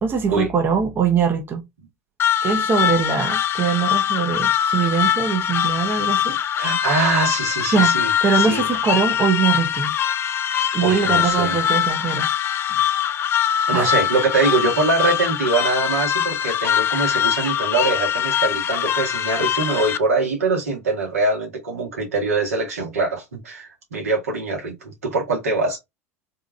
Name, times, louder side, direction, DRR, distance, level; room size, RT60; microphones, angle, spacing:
voice 1, 0.0-1.6 2.4-6.4 7.7-7.9 8.2-9.9 10.7-12.3 13.7-13.9, right 6 dB, 25° right, 0.9 m, -22 dB
sound 1, 2.2-20.0, left 10 dB, 30° left, 0.4 m, -22 dB
voice 2, 6.6-8.7 10.8-11.6 13.7-25.8, right 3 dB, 75° right, 1.9 m, -23 dB
3.7 x 3.5 x 2.5 m
figure-of-eight pair, 75°, 8 cm